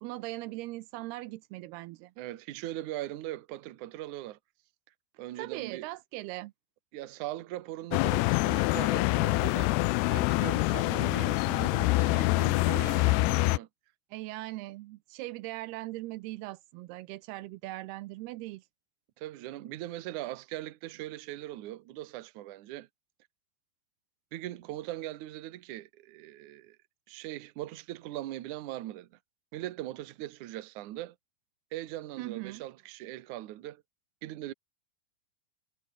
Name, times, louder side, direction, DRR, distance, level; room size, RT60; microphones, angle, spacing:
voice 1, 0.0-2.1 5.4-6.5 14.1-18.6 32.2-32.6, right 18 dB, 80° right, 2.7 m, -40 dB
voice 2, 2.2-4.4 5.2-5.9 6.9-9.8 10.1-13.7 19.2-22.9 24.3-26.8 27.1-29.2 29.5-31.2 31.7-33.8 34.2-34.5, right 15 dB, 65° right, 2.2 m, -40 dB
sound 1, 7.9-13.6, left 23 dB, 90° left, 2.6 m, -26 dB
omnidirectional pair, 4.6 m